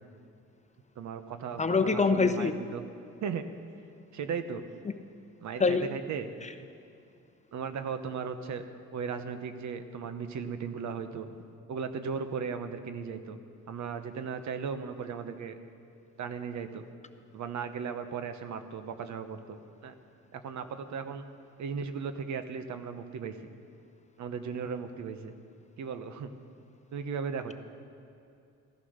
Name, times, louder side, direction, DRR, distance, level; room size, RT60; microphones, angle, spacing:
voice 1, 1.0-2.8 3.2-3.4 4.1-4.6 5.4-6.3 7.5-8.6 8.9-11.3 11.7-13.4 13.7-15.5 16.2-16.8 17.3-19.9 20.3-21.2 21.6-23.4 24.2-25.3 25.8-26.3 26.9-27.5, right 6 dB, 65° right, 9 dB, 1.0 m, -36 dB
voice 2, 1.6-2.5 5.6-6.0 6.4-6.5, left 4 dB, 25° left, 9 dB, 0.8 m, -25 dB
15.5 x 11.5 x 6.6 m, 2.5 s
cardioid pair, 90°, 30 cm